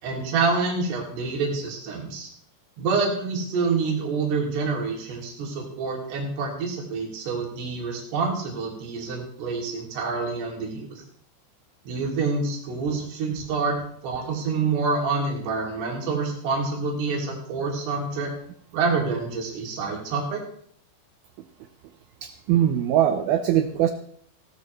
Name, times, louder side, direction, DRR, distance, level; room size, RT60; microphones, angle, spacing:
voice 1, 0.0-2.3 2.8-11.0 11.9-18.3 18.7-20.4, right 4 dB, 70° right, -1 dB, 4.5 m, -27 dB
voice 2, 22.2-23.9, right 11 dB, 85° right, 8 dB, 2.1 m, -21 dB
16.5 x 13.0 x 3.1 m, 0.63 s
omnidirectional pair, 5.1 m